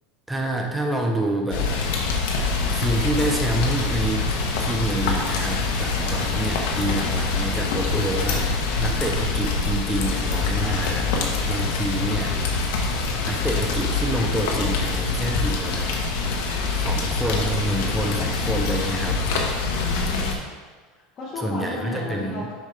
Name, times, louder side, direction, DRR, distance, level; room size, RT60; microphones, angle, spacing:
voice 1, 0.3-1.7 2.7-4.3 4.6-11.1 11.4-12.4 13.3-15.9 16.7-19.2 21.4-22.5, right 1 dB, 5° right, 1 dB, 0.7 m, -27 dB
Rain, 1.5-20.3, left 4 dB, 75° left, 1.1 m, -25 dB
voice 2, 19.6-20.5 21.2-22.5, left 4 dB, 30° left, -9 dB, 1.6 m, -33 dB
7.0 x 5.6 x 3.4 m, 1.4 s
supercardioid pair, 135°, 0 cm